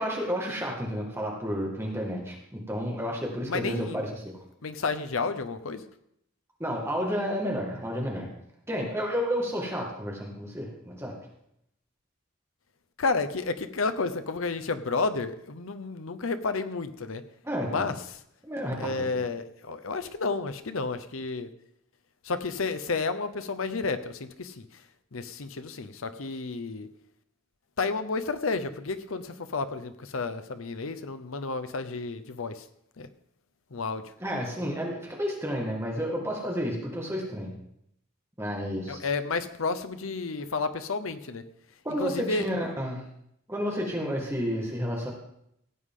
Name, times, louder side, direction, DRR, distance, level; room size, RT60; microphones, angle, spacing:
voice 1, 0.0-4.4 6.6-8.3 8.7-11.2 17.4-17.9 18.4-19.1 34.2-37.6 38.4-39.0 41.8-43.1 43.5-45.1, equal, 10° right, -1 dB, 1.9 m, -31 dB
voice 2, 3.5-4.1 4.6-5.8 13.0-17.2 17.6-17.9 18.8-21.5 22.2-24.8 25.1-26.9 27.8-32.7 33.0-33.1 33.7-34.0 38.9-41.5 42.0-42.5, left 4 dB, 85° left, 11 dB, 0.8 m, -31 dB
16.0 x 8.3 x 3.8 m, 0.75 s
head